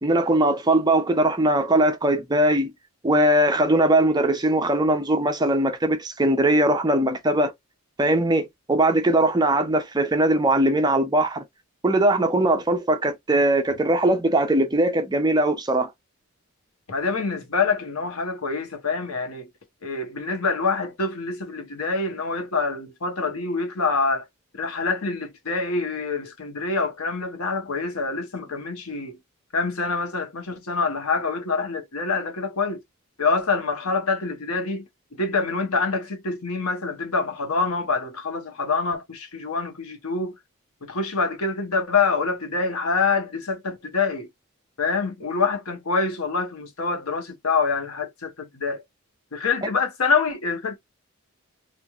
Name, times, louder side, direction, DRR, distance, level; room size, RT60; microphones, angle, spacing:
voice 1, 0.0-2.7 3.0-7.5 8.0-11.4 11.8-15.9, right 1 dB, 20° right, 0.5 m, -20 dB
voice 2, 16.9-19.5 19.8-24.3 24.5-29.2 29.5-32.8 33.2-34.8 35.1-40.3 40.8-44.3 44.8-48.8 49.3-50.8, left 4 dB, 80° left, 0.9 m, -26 dB
3.0 x 2.5 x 2.3 m
head